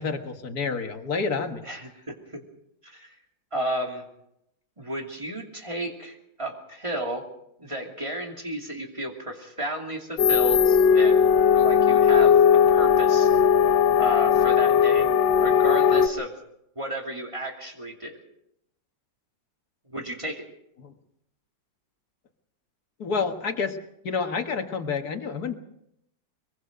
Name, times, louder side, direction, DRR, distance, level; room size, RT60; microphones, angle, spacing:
voice 1, 0.0-1.6 20.8-20.9 23.0-23.8 24.0-25.5, left 5 dB, 55° left, 6 dB, 2.0 m, -29 dB
voice 2, 1.6-2.4 2.8-3.1 3.5-4.0 4.8-7.2 7.6-12.4 12.7-13.3 14.0-16.3 16.8-18.2 19.9-20.4, equal, 15° right, 1 dB, 2.7 m, -33 dB
sound 1, 10.2-16.1, left 7 dB, 85° left, 1.7 m, -18 dB
22.5 x 22.5 x 5.2 m, 0.80 s
omnidirectional pair, 2.0 m